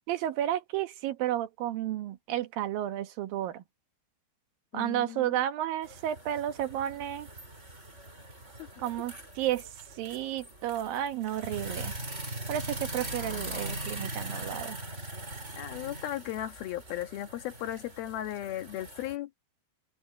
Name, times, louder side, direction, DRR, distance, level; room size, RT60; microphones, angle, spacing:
voice 1, 0.1-3.6 4.7-7.3 8.8-9.6 10.0-11.9 12.5-14.8, right 12 dB, 70° right, 2.7 m, -32 dB
voice 2, 4.7-5.4 8.6-8.7 15.6-19.3, left 13 dB, 70° left, 3.3 m, -36 dB
sound 1, 5.8-19.1, right 1 dB, 15° right, 5.2 m, -41 dB
open air
omnidirectional pair, 4.6 m